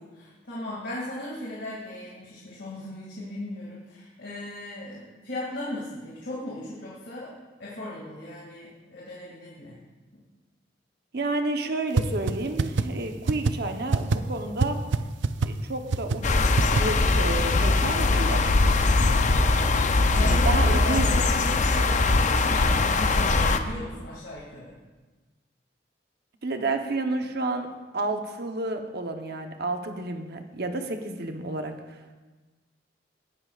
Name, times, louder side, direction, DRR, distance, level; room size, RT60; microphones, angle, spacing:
voice 1, 0.2-7.3 7.6-9.8 20.1-24.7, left 1 dB, 70° left, -5 dB, 2.4 m, -37 dB
voice 2, 11.1-14.8 15.5-18.9 20.2-21.1 26.4-32.0, right 2 dB, 60° right, 5 dB, 1.0 m, -31 dB
sound 1, 12.0-12.1 12.3-12.4 12.6-12.8 13.3-13.5 13.9-14.2 14.6-14.7 14.9-15.0 15.2-15.5 15.9-16.2 16.6-16.8, right 4 dB, 80° right, 0.5 m, -21 dB
sound 2, 16.2-23.6, left 3 dB, 45° left, 0.6 m, -21 dB
19.5 x 10.5 x 2.5 m, 1.3 s
head